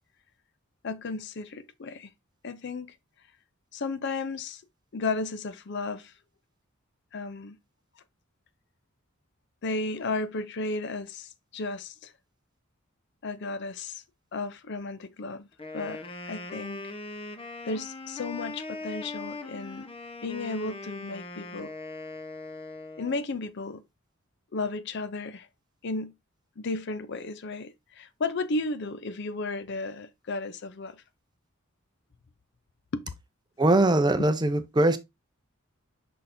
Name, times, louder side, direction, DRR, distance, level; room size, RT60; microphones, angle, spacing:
voice 1, 0.8-2.1 2.4-3.0 3.7-4.6 4.9-6.1 7.1-7.6 9.6-12.1 13.2-14.0 14.3-15.5 15.7-16.9 17.6-19.9 20.2-21.7 23.0-23.8 24.5-25.5 25.8-26.1 26.6-31.0 32.9-33.0, left 3 dB, 55° left, 0.5 m, -34 dB
Wind instrument woodwind instrument, 15.5-23.2, left 2 dB, 25° left, 0.8 m, -40 dB
voice 2, 33.6-35.0, right 2 dB, 20° right, 0.5 m, -21 dB
6.4 x 5.6 x 2.6 m
head